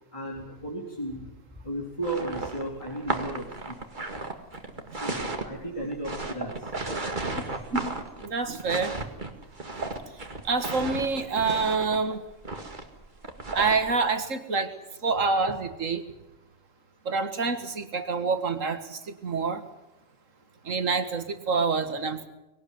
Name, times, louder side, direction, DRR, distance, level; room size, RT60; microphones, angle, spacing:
voice 1, 0.1-1.3 1.6-3.8 5.0-6.7, right 1 dB, 25° left, -3 dB, 4.0 m, -34 dB
sound 1, 2.0-13.9, right 2 dB, 40° right, 2.2 m, -34 dB
voice 2, 7.7-9.0 10.4-12.2 13.5-16.1 17.1-19.6 20.6-22.3, right 4 dB, 90° right, 9 dB, 2.1 m, -27 dB
21.0 x 18.0 x 9.4 m, 0.96 s
omnidirectional pair, 1.3 m